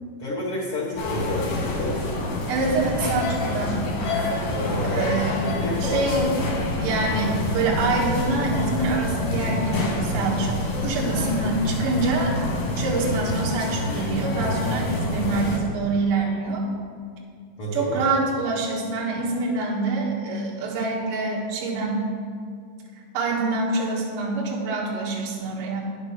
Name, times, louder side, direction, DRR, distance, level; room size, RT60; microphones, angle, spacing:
voice 1, 0.2-2.1 4.5-6.1 7.2-7.4 17.6-18.1, left 1 dB, 85° left, -7 dB, 1.2 m, -30 dB
sound 1, 1.0-15.6, left 2 dB, 65° left, 3.1 m, -27 dB
voice 2, 2.5-3.8 4.9-5.5 5.8-6.3 6.8-10.6 10.8-12.3 12.8-16.6 17.7-22.1 23.1-25.8, right 3 dB, 55° right, -3 dB, 2.2 m, -25 dB
9.7 x 6.8 x 5.8 m, 2.2 s
omnidirectional pair, 4.7 m